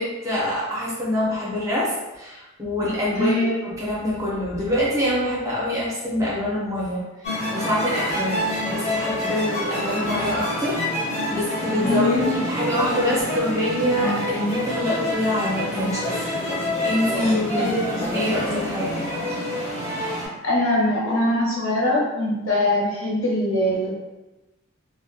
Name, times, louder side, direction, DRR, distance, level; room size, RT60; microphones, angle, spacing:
voice 1, 0.0-10.8 11.3-16.3 16.8-17.7 18.0-19.0, left 1 dB, 15° right, -7 dB, 0.6 m, -25 dB
voice 2, 3.1-3.5 11.8-12.3 17.2-18.1 20.4-23.9, left 1 dB, 70° left, -5 dB, 0.8 m, -23 dB
sound 1, 7.2-20.3, left 1 dB, 30° left, 0.6 m, -27 dB
2.3 x 2.1 x 2.6 m, 1.0 s
head